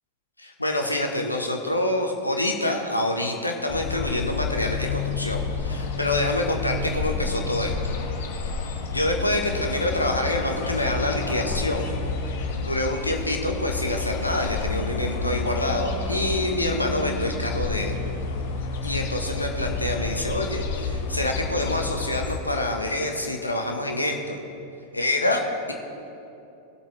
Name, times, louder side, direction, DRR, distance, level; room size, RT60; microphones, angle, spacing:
voice 1, 0.4-7.7 8.9-11.9 12.6-18.0 18.8-24.4 24.9-25.7, left 1 dB, 85° left, 2 dB, 1.2 m, -26 dB
sound 1, 3.7-22.4, left 4 dB, 55° left, 1.2 m, -30 dB
19.0 x 7.9 x 3.3 m, 2.8 s
figure-of-eight pair, 90°, 0 cm